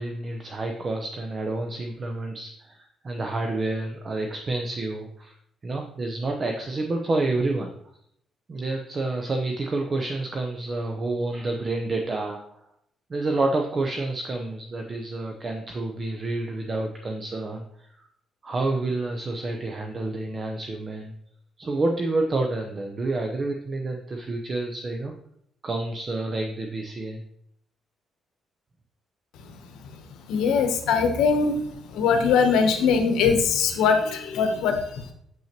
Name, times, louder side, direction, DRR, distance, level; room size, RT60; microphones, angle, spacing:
voice 1, 0.0-5.3 5.6-7.7 8.5-12.6 13.1-18.1 18.4-21.1 21.6-25.1 25.6-27.2, right 2 dB, 40° right, 3 dB, 0.8 m, -29 dB
voice 2, 30.3-31.6 31.8-35.1, left 5 dB, 85° left, 6 dB, 1.0 m, -22 dB
7.3 x 5.7 x 3.0 m, 0.69 s
cardioid pair, 90°, 0 cm